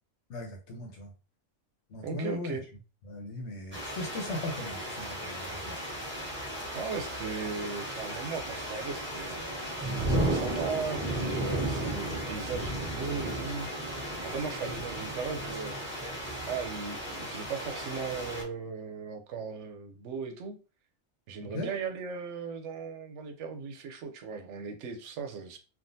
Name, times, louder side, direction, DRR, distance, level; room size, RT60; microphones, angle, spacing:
voice 1, 0.3-1.1 1.9-2.6 3.0-5.9 21.4-21.7, left 1 dB, 70° left, 1.2 m, -38 dB
voice 2, 2.0-2.7 6.7-9.4 10.1-13.7 14.2-15.8 16.5-20.6 21.3-25.6, right 5 dB, 85° right, 0.9 m, -37 dB
sound 1, 3.7-18.4, right 1 dB, 10° right, 1.2 m, -34 dB
3.5 x 2.3 x 2.6 m
omnidirectional pair, 1.2 m